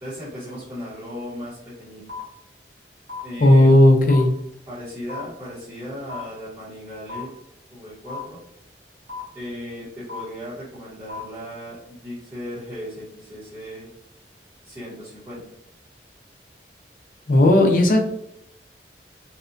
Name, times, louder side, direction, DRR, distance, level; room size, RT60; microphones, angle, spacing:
voice 1, 0.0-2.0 3.2-3.7 4.7-7.3 7.7-8.4 9.3-13.9 14.6-15.4, equal, 25° right, -12 dB, 0.9 m, -36 dB
sound 1, 2.1-2.2 3.1-3.2 4.1-4.2 5.1-5.2 6.1-6.2 7.1-7.2 8.1-8.2 9.1-9.2 10.1-10.2 11.1-11.2, left 4 dB, 80° right, 1.1 m, -34 dB
voice 2, 3.4-4.3 17.3-18.0, left 1 dB, 50° left, 3 dB, 0.4 m, -14 dB
2.8 x 2.2 x 2.5 m, 0.76 s
head